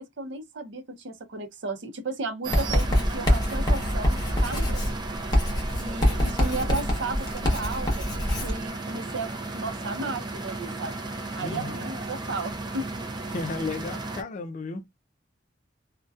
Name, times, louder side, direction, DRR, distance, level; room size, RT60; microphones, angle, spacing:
voice 1, 0.0-5.2 5.8-11.0 11.4-13.0, right 3 dB, 80° right, 0.6 m, -34 dB
sound 1, 2.4-14.2, right 2 dB, 25° right, 0.4 m, -35 dB
Writing, 2.5-8.6, left 1 dB, 20° left, 0.9 m, -25 dB
voice 2, 11.4-11.9 13.3-14.8, left 3 dB, 40° left, 0.3 m, -33 dB
2.6 x 2.1 x 2.3 m
head